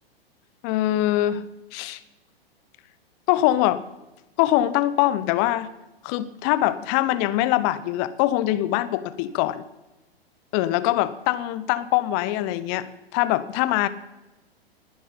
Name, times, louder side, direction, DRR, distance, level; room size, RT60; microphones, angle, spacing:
voice 1, 0.6-1.4 1.7-2.0 3.3-3.8 4.4-5.7 6.0-9.6 10.5-12.9 13.1-13.9, left 14 dB, 30° left, 15 dB, 0.7 m, -23 dB
20.5 x 10.0 x 4.0 m, 1.0 s
figure-of-eight pair, 105°, 31 cm